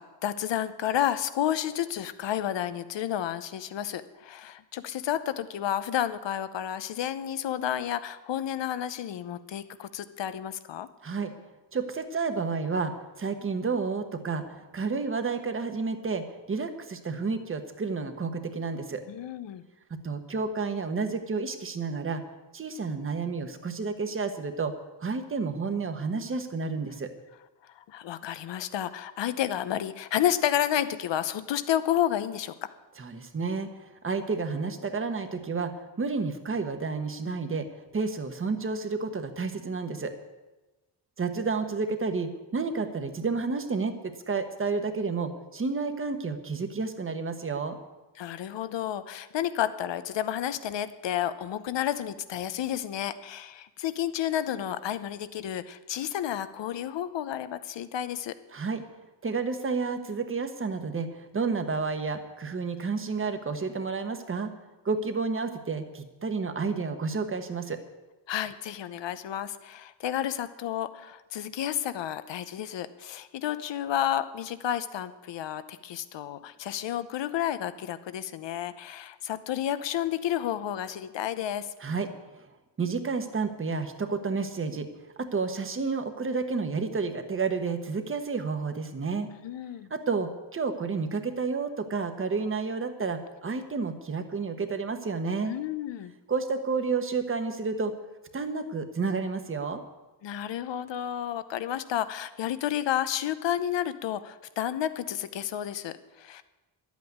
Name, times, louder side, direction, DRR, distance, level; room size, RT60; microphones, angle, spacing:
voice 1, 0.0-10.9 19.1-19.6 27.6-32.7 48.2-58.3 68.3-81.7 89.4-89.9 95.4-96.1 100.2-106.4, left 11 dB, 85° left, 13 dB, 0.9 m, -31 dB
voice 2, 11.0-11.3 11.7-19.0 20.0-22.2 22.5-24.7 25.0-27.1 33.0-37.7 37.9-40.1 41.2-47.8 58.5-58.8 59.2-64.5 64.8-67.8 81.8-82.1 82.4-82.5 82.8-84.9 85.2-89.3 89.9-95.5 96.3-97.9 98.3-99.8, right 4 dB, 30° right, 7 dB, 1.1 m, -30 dB
12.0 x 8.4 x 9.4 m, 1.1 s
wide cardioid pair, 170°, 42 cm